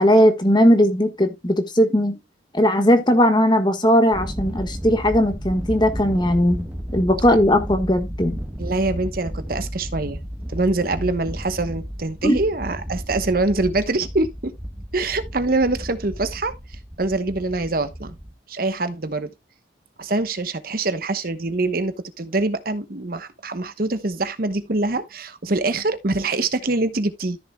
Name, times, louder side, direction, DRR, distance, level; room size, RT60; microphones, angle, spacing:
voice 1, 0.0-2.2 2.5-6.7 6.9-8.4 12.2-12.4, equal, 25° left, 1.5 m, -18 dB
Thunder, 4.1-18.3, equal, 5° right, 1.3 m, -33 dB
voice 2, 8.6-10.2 10.5-14.5 14.9-18.2 18.5-19.3 20.0-27.4, right 2 dB, 50° right, 1.0 m, -24 dB
13.5 x 6.7 x 2.3 m
head